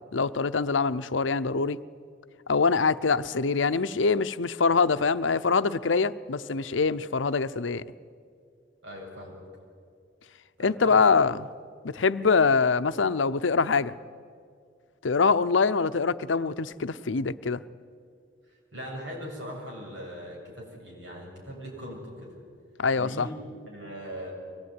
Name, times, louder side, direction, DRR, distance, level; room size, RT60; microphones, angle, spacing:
voice 1, 0.0-1.8 2.5-7.8 10.6-11.5 11.9-13.9 15.0-17.6 22.8-23.3, left 4 dB, 90° left, 13 dB, 0.7 m, -24 dB
voice 2, 8.8-9.4 10.6-11.0 18.7-22.3 23.0-23.3 23.7-24.3, equal, 70° right, -1 dB, 7.8 m, -40 dB
24.0 x 19.0 x 9.7 m, 2.2 s
head